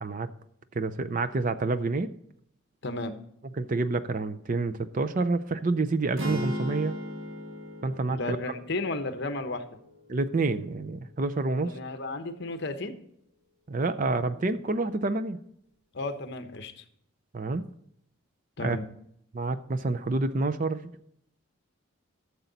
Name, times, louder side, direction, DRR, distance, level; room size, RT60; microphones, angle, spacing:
voice 1, 0.7-2.1 3.6-7.0 7.8-8.4 10.1-11.8 13.7-15.4 17.3-17.7 18.6-18.8 19.3-20.9, right 3 dB, 40° right, 12 dB, 0.5 m, -28 dB
voice 2, 2.8-3.2 8.1-9.7 11.6-13.0 15.9-16.8 18.6-18.9, left 2 dB, 55° left, 8 dB, 1.0 m, -33 dB
sound 1, 6.2-10.3, equal, 80° right, 1.5 m, -37 dB
13.0 x 6.9 x 4.0 m, 0.71 s
head